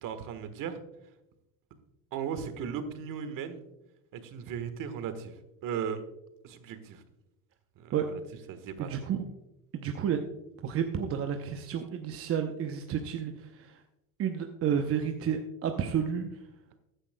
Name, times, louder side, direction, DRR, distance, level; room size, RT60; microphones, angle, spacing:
voice 1, 0.0-0.8 2.1-3.6 4.1-6.0 6.4-7.0 7.8-8.1 8.5-8.9, right 7 dB, 45° right, 10 dB, 1.4 m, -37 dB
voice 2, 8.8-9.2 9.7-10.2 10.6-13.7 14.2-16.3, right 8 dB, 30° right, 5 dB, 0.8 m, -31 dB
14.5 x 10.0 x 2.2 m, 0.90 s
supercardioid pair, 110°, 43 cm